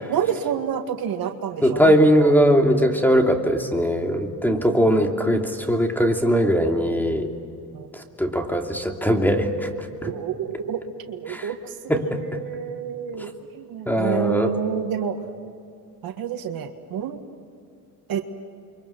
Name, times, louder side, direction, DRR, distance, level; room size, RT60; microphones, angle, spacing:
voice 1, 0.1-2.3 7.7-7.9 10.0-10.8 11.1-11.7 12.3-15.2 16.0-17.2 18.1-18.2, right 8 dB, 60° right, 6 dB, 1.8 m, -28 dB
voice 2, 1.6-7.3 7.9-10.1 11.3-11.5 11.9-12.2 13.2-13.3 13.9-14.5, equal, 5° left, 3 dB, 2.9 m, -20 dB
28.5 x 24.0 x 6.0 m, 2.5 s
supercardioid pair, 85°, 41 cm